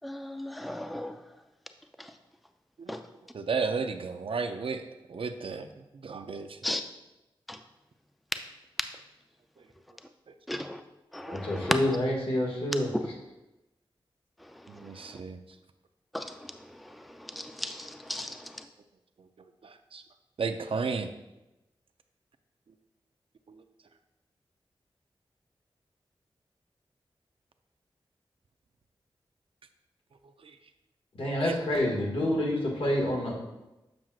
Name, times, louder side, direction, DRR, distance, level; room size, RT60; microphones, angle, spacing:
voice 1, 0.0-1.2 2.0-2.1 2.9-3.0 6.6-6.8 7.5-7.6 10.5-10.8 11.1-12.0 14.4-15.2 16.1-18.6, left 1 dB, ahead, 7 dB, 0.4 m, -36 dB
voice 2, 3.3-4.8 5.1-5.7 6.0-6.6 11.3-11.4 14.7-15.4 19.6-20.0 20.4-21.1 23.5-23.6 30.4-30.5 31.4-31.5, right 5 dB, 70° right, 8 dB, 0.5 m, -33 dB
voice 3, 11.3-12.9 31.1-33.3, left 1 dB, 80° left, -3 dB, 1.8 m, -28 dB
7.5 x 6.1 x 2.4 m, 0.98 s
wide cardioid pair, 75°, 10 cm